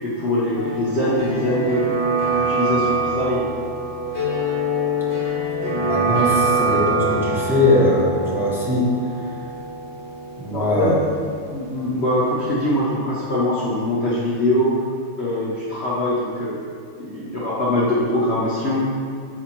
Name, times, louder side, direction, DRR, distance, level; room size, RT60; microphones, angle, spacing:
voice 1, 0.0-3.5 10.5-11.1 11.5-14.8 15.1-16.6 17.0-18.9, left 1 dB, 45° left, -9 dB, 0.9 m, -22 dB
sound 1, 0.5-12.3 12.5-12.6, right 2 dB, 60° left, 2.2 m, -25 dB
voice 2, 5.6-8.9 9.2-9.3 10.4-10.9, left 2 dB, ahead, -7 dB, 0.7 m, -21 dB
4.9 x 4.2 x 5.9 m, 2.2 s
omnidirectional pair, 2.2 m